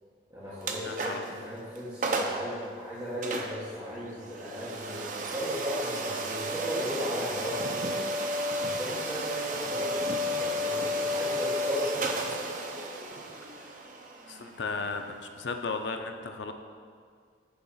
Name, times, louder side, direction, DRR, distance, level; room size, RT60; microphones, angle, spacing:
voice 1, 0.3-1.1 1.4-8.0 8.6-12.3, equal, 20° right, -11 dB, 1.4 m, -36 dB
sound 1, 0.6-1.4 1.8-1.9 2.0-2.5 3.2-15.9, equal, 45° right, 0.6 m, -33 dB
voice 2, 0.8-1.3 14.3-16.5, left 4 dB, 75° left, 6 dB, 0.5 m, -35 dB
Bird, 2.7-15.2, equal, 80° right, 0.9 m, -53 dB
8.6 x 3.8 x 5.6 m, 2.1 s
head